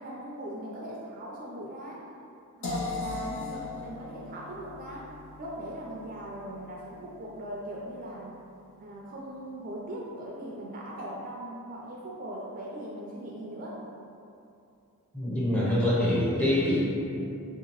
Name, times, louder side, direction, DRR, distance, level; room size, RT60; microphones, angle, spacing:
voice 1, 0.0-2.0 2.6-5.1 5.4-8.3 8.8-13.8, right 1 dB, 40° right, -3 dB, 0.4 m, -39 dB
sound 1, 2.6-8.5, left 3 dB, 55° left, 0.5 m, -39 dB
voice 2, 15.1-16.8, left 1 dB, 5° left, -8 dB, 0.6 m, -25 dB
3.4 x 2.7 x 2.9 m, 2.6 s
head